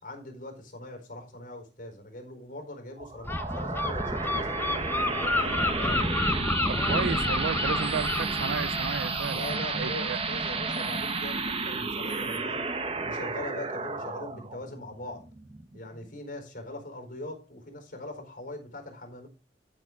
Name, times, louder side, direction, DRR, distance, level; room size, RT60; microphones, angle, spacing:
voice 1, 0.0-6.1 9.3-12.6 13.0-15.2 15.7-19.3, left 1 dB, 50° left, 4.4 m, -41 dB
sound 1, 3.0-16.1, right 4 dB, 30° right, 1.2 m, -32 dB
Gull seagull, 3.2-10.8, left 2 dB, 10° left, 0.9 m, -30 dB
voice 2, 6.7-10.2, right 6 dB, 85° right, 0.4 m, -33 dB
13.5 x 6.6 x 3.8 m
head